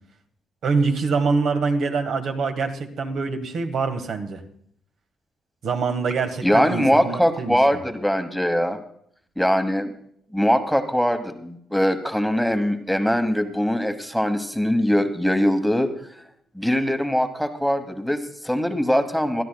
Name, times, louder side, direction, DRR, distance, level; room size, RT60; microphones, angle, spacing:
voice 1, 0.6-4.4 5.6-7.6, right 4 dB, 65° right, 5 dB, 1.5 m, -24 dB
voice 2, 6.4-8.8 9.4-9.9 10.3-15.9 16.5-19.4, equal, ahead, 7 dB, 1.1 m, -22 dB
22.0 x 12.5 x 2.2 m, 0.66 s
cardioid pair, 90°, 0 cm